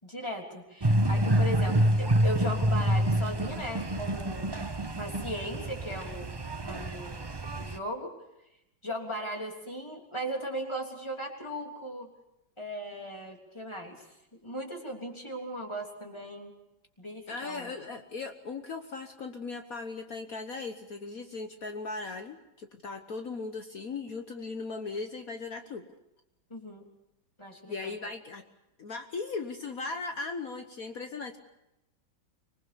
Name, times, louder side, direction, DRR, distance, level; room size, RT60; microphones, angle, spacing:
voice 1, 0.0-4.5 4.9-6.3 6.6-7.2 7.6-8.1 8.8-12.1 12.6-14.1 14.4-16.5 17.0-17.7 26.5-26.9 27.4-27.9, equal, 15° left, 1 dB, 3.4 m, -37 dB
sound 1, 0.8-7.8, right 1 dB, 25° right, 0.5 m, -27 dB
voice 2, 17.3-25.9 27.6-28.4 28.8-31.4, left 4 dB, 50° left, 6 dB, 1.5 m, -38 dB
25.5 x 21.0 x 6.9 m, 0.89 s
omnidirectional pair, 2.1 m